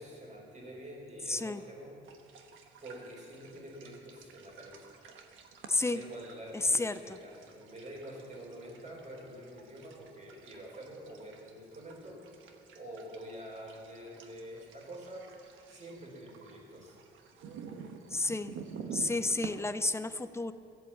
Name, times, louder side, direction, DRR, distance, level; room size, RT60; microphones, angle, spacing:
voice 1, 0.0-2.0 2.8-4.9 5.9-12.5 12.7-15.3 15.7-17.0, right 1 dB, 40° right, -2 dB, 4.3 m, -47 dB
voice 2, 1.3-1.6 5.7-6.0 6.5-7.2 18.1-18.5 18.9-20.5, left 2 dB, 15° left, 12 dB, 0.6 m, -31 dB
sound 1, 2.0-19.5, right 6 dB, 90° right, 1.2 m, -50 dB
14.5 x 8.3 x 7.2 m, 2.4 s
cardioid pair, 90°, 20 cm